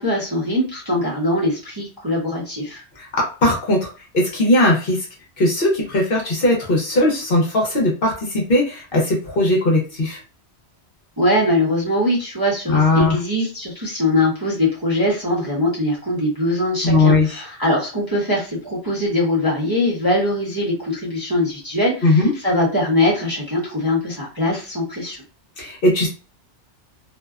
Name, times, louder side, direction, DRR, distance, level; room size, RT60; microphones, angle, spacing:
voice 1, 0.0-2.8 11.2-25.2, left 1 dB, 20° right, -7 dB, 0.8 m, -22 dB
voice 2, 3.0-5.0 5.4-10.2 12.7-13.2 16.8-17.4 22.0-22.3 25.6-26.1, left 1 dB, 55° left, -1 dB, 1.0 m, -18 dB
2.6 x 2.1 x 2.4 m, 0.34 s
omnidirectional pair, 1.2 m